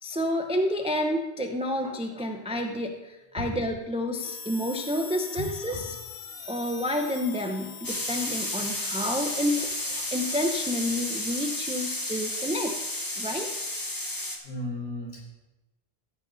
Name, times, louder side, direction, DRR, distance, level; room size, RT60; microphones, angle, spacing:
voice 1, 0.0-6.0 6.5-12.7 13.2-13.5, left 1 dB, 5° right, 3 dB, 0.7 m, -29 dB
sound 1, 4.2-10.3, left 4 dB, 65° left, 1.3 m, -43 dB
sound 2, 7.8-14.4, left 1 dB, 20° left, 1.3 m, -32 dB
voice 2, 14.4-15.2, left 1 dB, 50° left, -5 dB, 5.0 m, -34 dB
15.5 x 7.4 x 4.0 m, 1.1 s
omnidirectional pair, 1.1 m